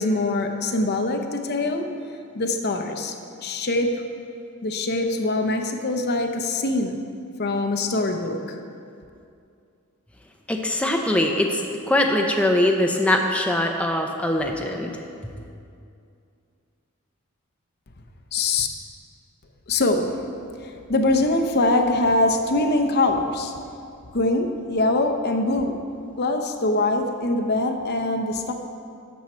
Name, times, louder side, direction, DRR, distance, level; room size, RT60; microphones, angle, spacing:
voice 1, 0.0-1.9 2.3-4.0 4.6-7.0 7.4-8.6 18.3-18.7 19.7-20.1 20.6-23.5 24.1-25.7 26.2-28.5, left 2 dB, 50° left, 5 dB, 0.7 m, -23 dB
voice 2, 10.5-15.0, left 1 dB, 5° left, 1 dB, 0.6 m, -22 dB
11.5 x 7.3 x 4.4 m, 2.5 s
head